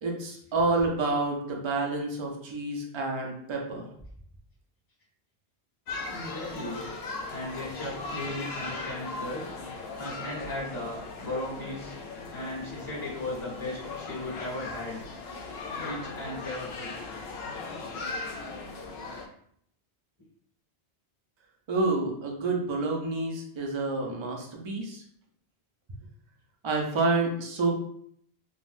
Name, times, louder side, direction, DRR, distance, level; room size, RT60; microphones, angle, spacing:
voice 1, 0.0-3.9 21.7-25.0 26.6-27.7, right 3 dB, 40° right, 0 dB, 0.4 m, -28 dB
sound 1, 5.9-19.3, left 3 dB, 70° left, 0.8 m, -38 dB
voice 2, 6.1-6.9 7.3-9.5 10.0-11.9 12.3-15.0 15.8-17.0, left 1 dB, 20° left, -9 dB, 1.5 m, -36 dB
3.7 x 2.1 x 2.5 m, 0.66 s
omnidirectional pair, 1.1 m